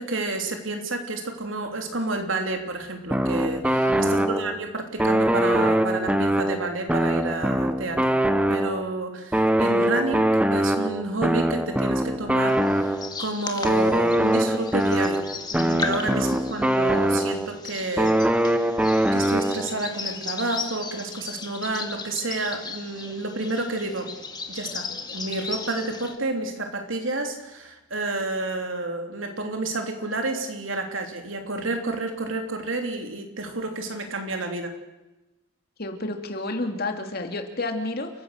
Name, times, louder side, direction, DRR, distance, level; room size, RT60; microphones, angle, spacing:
voice 1, 0.0-8.2 8.5-10.3 10.5-15.2 15.5-18.2 18.4-18.8 19.1-24.1 24.5-34.7, right 2 dB, 80° right, 4 dB, 3.3 m, -30 dB
sound 1, 3.1-4.6 5.0-8.9 9.3-13.2 13.6-17.6 18.0-19.8, right 1 dB, 5° right, 0.9 m, -23 dB
voice 2, 3.8-4.3 16.0-16.1 35.8-38.1, left 2 dB, 50° left, 5 dB, 2.6 m, -30 dB
sound 2, 12.5-26.2, left 4 dB, 20° left, 2.0 m, -36 dB
29.0 x 15.5 x 6.6 m, 1.0 s
head